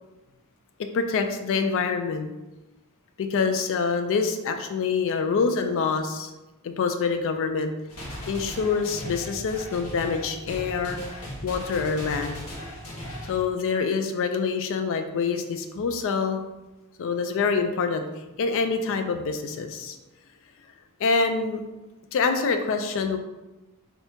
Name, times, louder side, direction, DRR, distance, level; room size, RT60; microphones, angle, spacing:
voice 1, 0.9-2.3 3.2-6.3 6.6-7.7 8.3-11.0 11.4-12.4 13.3-16.4 17.0-18.0 18.4-20.0 21.0-21.6 22.1-23.2, left 5 dB, 60° left, 7 dB, 0.3 m, -26 dB
sound 1, 7.9-13.4, equal, 80° left, 0.9 m, -37 dB
2.7 x 2.7 x 3.4 m, 1.1 s
head